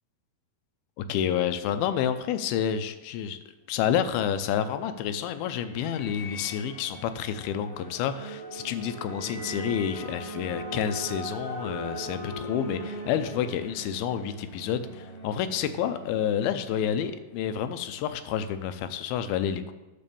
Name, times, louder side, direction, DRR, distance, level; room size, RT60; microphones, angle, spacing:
voice 1, 1.0-3.4 3.7-19.7, left 9 dB, 80° left, 10 dB, 2.4 m, -29 dB
sound 1, 3.7-17.4, right 1 dB, 50° left, 1.4 m, -41 dB
10.5 x 4.2 x 6.9 m, 1.1 s
omnidirectional pair, 4.6 m